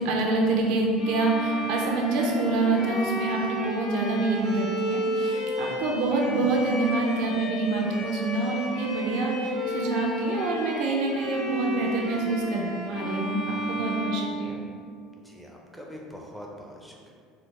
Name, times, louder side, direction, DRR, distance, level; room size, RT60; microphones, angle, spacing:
voice 1, 0.0-14.6, right 2 dB, 70° right, -1 dB, 0.5 m, -26 dB
Bowed string instrument, 1.0-15.0, equal, 65° left, 0.9 m, -33 dB
voice 2, 15.2-17.1, equal, ahead, -2 dB, 0.5 m, -43 dB
3.3 x 2.0 x 3.1 m, 2.1 s
supercardioid pair, 100°, 0 cm